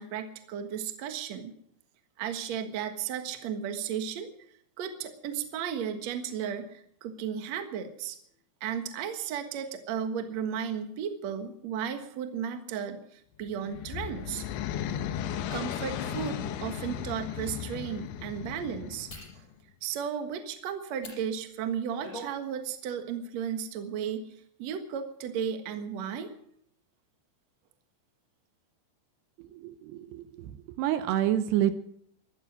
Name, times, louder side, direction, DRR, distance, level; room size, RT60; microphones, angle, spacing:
voice 1, 0.0-1.5 2.2-4.3 4.8-8.2 8.6-14.5 15.5-19.1 19.4-19.5 19.8-24.2 24.6-26.3, right 8 dB, 55° right, 7 dB, 2.0 m, -34 dB
sound 1, 13.4-19.5, left 9 dB, 90° left, 3.2 m, -36 dB
sound 2, 19.1-19.4 21.0-21.2 21.7-22.3 22.7-22.9, equal, 20° left, 6.6 m, -43 dB
voice 2, 29.4-31.8, right 12 dB, 80° right, 11 dB, 2.7 m, -29 dB
14.0 x 13.5 x 6.3 m, 0.68 s
omnidirectional pair, 5.0 m